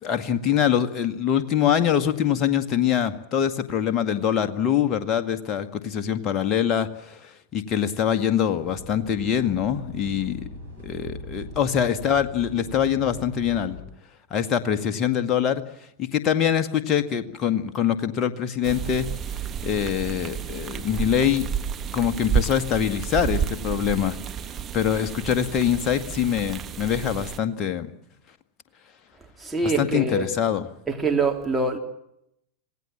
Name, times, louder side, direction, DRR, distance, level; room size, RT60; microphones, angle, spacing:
voice 1, 0.0-10.4 10.8-13.8 14.3-15.6 16.0-19.1 19.6-21.5 21.9-24.2 24.7-27.9 29.8-30.6, left 9 dB, 35° left, 1.9 m, -24 dB
sound 1, 8.6-13.8, equal, 85° right, 7.4 m, -40 dB
sound 2, 18.6-27.4, right 8 dB, 30° right, 1.7 m, -31 dB
voice 2, 29.4-30.3 30.9-31.8, right 3 dB, 10° right, 3.5 m, -24 dB
26.5 x 17.5 x 7.4 m
figure-of-eight pair, 90°, 0 cm